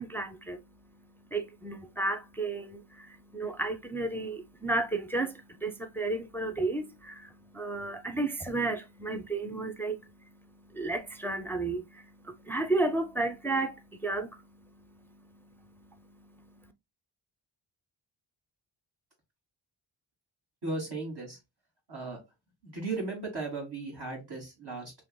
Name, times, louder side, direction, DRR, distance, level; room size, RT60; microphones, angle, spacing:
voice 1, 0.0-16.7, right 2 dB, 5° left, 0.5 m, -34 dB
voice 2, 20.6-21.4 21.9-22.2 22.6-24.9, right 3 dB, 55° right, 2.8 m, -36 dB
5.7 x 3.0 x 2.2 m
wide cardioid pair, 115°, 46 cm